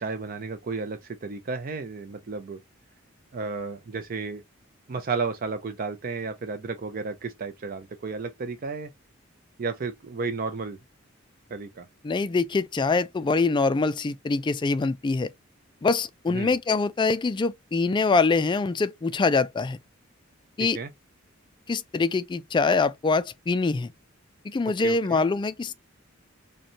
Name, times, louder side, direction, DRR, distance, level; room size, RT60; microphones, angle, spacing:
voice 1, 0.0-2.6 3.3-4.4 4.9-8.9 9.6-10.8 11.5-11.9 16.3-16.5 20.6-20.9 24.8-25.2, right 4 dB, 45° right, 0.4 m, -33 dB
voice 2, 12.0-15.3 15.8-19.8 20.6-20.8 21.7-23.9 24.4-25.7, left 4 dB, 25° left, 0.3 m, -24 dB
5.1 x 2.2 x 2.8 m
head